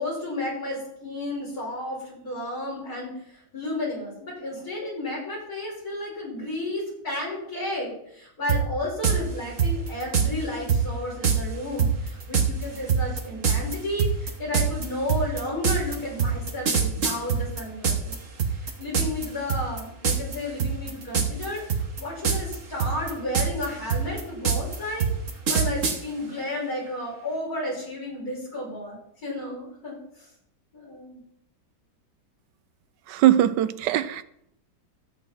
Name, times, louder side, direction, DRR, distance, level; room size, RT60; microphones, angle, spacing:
voice 1, 0.0-18.2 18.6-25.1 25.5-30.0 30.7-31.2, left 1 dB, 55° left, 6.0 m, -32 dB
sound 1, 8.5-8.6 9.0-9.2 9.6-10.3 10.7-10.8 11.2-11.4 11.8-18.1 18.4-19.2 19.5-19.8 20.0-20.3 20.6-21.4 21.7-22.5 22.8-26.0, right 6 dB, 50° right, 1.7 m, -23 dB
voice 2, 33.1-34.2, right 12 dB, 85° right, 1.3 m, -20 dB
14.0 x 8.0 x 4.4 m
omnidirectional pair, 1.9 m